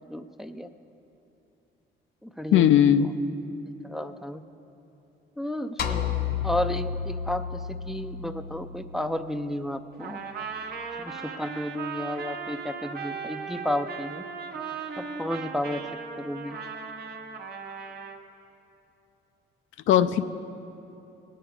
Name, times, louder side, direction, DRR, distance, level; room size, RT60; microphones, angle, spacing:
voice 1, 0.1-0.7 2.2-3.0 3.8-4.4 5.4-6.0 6.4-10.2 11.0-14.2 15.0-15.8 16.2-16.6, left 1 dB, ahead, 8 dB, 0.5 m, -32 dB
voice 2, 2.5-3.1 19.9-20.2, left 10 dB, 80° left, 11 dB, 0.5 m, -18 dB
sound 1, 5.8-10.2, left 7 dB, 50° left, 0.9 m, -32 dB
Trumpet, 10.0-18.2, right 5 dB, 55° right, 1.1 m, -37 dB
18.0 x 7.9 x 4.8 m, 2.9 s
cardioid pair, 90°, 20 cm